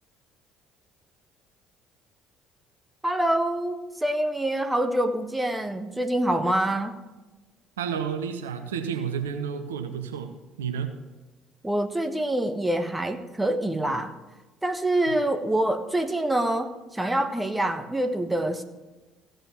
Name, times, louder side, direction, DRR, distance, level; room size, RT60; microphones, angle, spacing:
voice 1, 3.0-7.0 11.6-14.1 14.6-18.6, right 1 dB, 10° right, 7 dB, 1.2 m, -26 dB
voice 2, 7.8-10.3 10.6-10.9, right 7 dB, 80° right, 7 dB, 0.9 m, -30 dB
16.0 x 5.3 x 6.2 m, 1.1 s
figure-of-eight pair, 55°, 0 cm